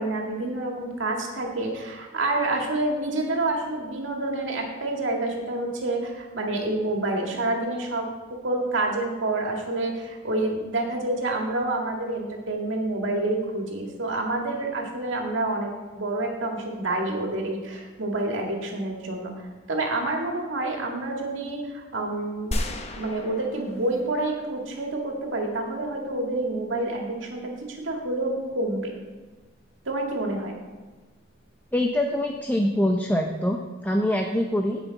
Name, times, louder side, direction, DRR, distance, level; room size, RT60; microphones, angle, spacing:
voice 1, 0.0-8.0 8.4-19.3 19.7-22.6 22.9-27.4 27.7-28.9 29.9-30.5, right 2 dB, 85° right, 0 dB, 2.0 m, -28 dB
sound 1, 22.5-24.8, left 1 dB, 35° left, 0.9 m, -33 dB
voice 2, 31.7-34.8, left 1 dB, 10° left, 2 dB, 0.6 m, -24 dB
16.0 x 5.8 x 4.1 m, 1.3 s
head